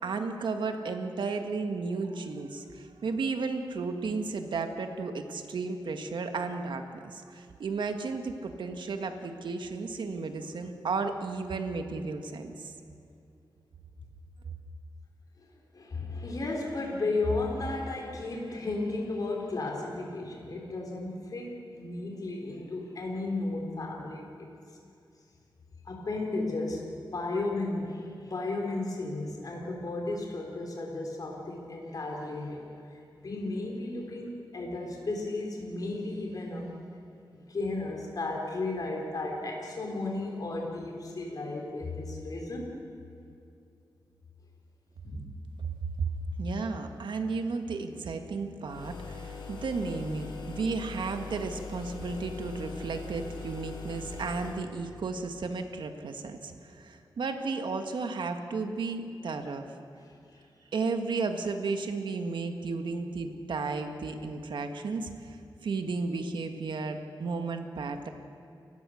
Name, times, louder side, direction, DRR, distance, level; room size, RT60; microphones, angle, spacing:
voice 1, 0.0-12.7 46.0-46.1 46.4-59.7 60.7-65.4 65.6-68.1, right 4 dB, 80° right, 6 dB, 1.8 m, -33 dB
voice 2, 15.7-24.5 25.9-26.9 27.1-36.7 37.3-42.7 45.0-45.2 60.0-60.4, left 2 dB, 50° left, 0 dB, 3.6 m, -34 dB
sound 1, 48.7-54.7, left 4 dB, 70° left, 3.5 m, -41 dB
29.5 x 15.5 x 6.5 m, 2.5 s
wide cardioid pair, 105°, 8 cm